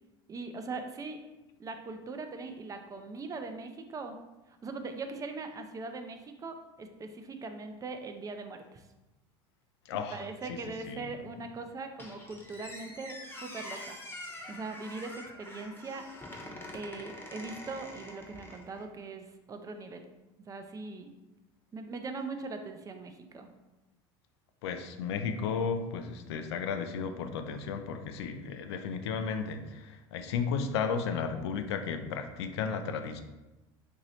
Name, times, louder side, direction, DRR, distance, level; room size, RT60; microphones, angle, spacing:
voice 1, 0.3-1.2 1.6-4.2 4.5-8.8 9.9-14.0 14.3-16.0 16.7-20.1 20.5-21.1 21.7-23.5, right 3 dB, 25° right, 6 dB, 0.4 m, -41 dB
voice 2, 9.9-10.2 10.9-11.0 24.6-33.2, left 6 dB, 85° left, 8 dB, 0.4 m, -34 dB
Squeak, 12.0-18.9, left 1 dB, 15° left, 0.9 m, -45 dB
3.0 x 2.6 x 4.1 m, 1.0 s
supercardioid pair, 95°, 14 cm